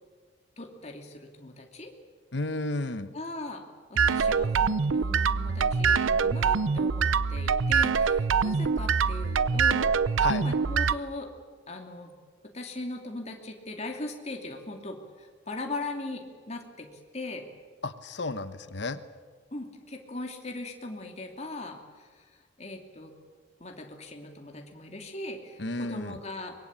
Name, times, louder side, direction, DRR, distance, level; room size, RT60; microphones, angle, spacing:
voice 1, 0.6-1.9 3.1-3.6 3.9-11.3 11.7-12.1 12.5-16.9 17.1-17.4 19.5-22.2 22.6-23.1 23.6-26.5, left 2 dB, 35° left, 3 dB, 2.9 m, -39 dB
voice 2, 2.3-3.1 10.2-10.5 17.8-19.0 25.6-26.2, left 2 dB, 60° left, 12 dB, 1.1 m, -32 dB
sound 1, 4.0-10.9, right 5 dB, 80° right, 0.6 m, -24 dB
24.0 x 22.0 x 8.9 m, 1.5 s
head